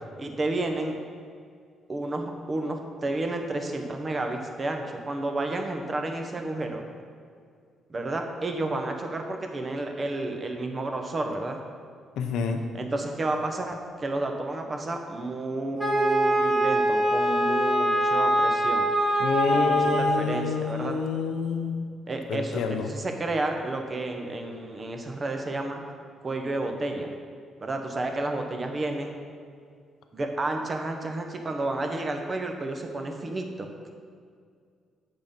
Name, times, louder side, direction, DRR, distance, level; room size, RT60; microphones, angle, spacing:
voice 1, 0.2-1.0 1.9-6.8 7.9-11.6 12.7-18.9 19.5-21.0 22.1-25.8 26.2-27.1 27.6-29.2 30.1-33.9, right 2 dB, 35° right, 4 dB, 1.0 m, -31 dB
voice 2, 12.2-12.6 19.2-21.8 22.3-22.9, left 5 dB, 80° left, 5 dB, 0.6 m, -28 dB
Wind instrument woodwind instrument, 15.8-20.3, right 1 dB, 10° right, 2.1 m, -23 dB
7.9 x 5.4 x 5.3 m, 2.2 s
cardioid pair, 90°, 0 cm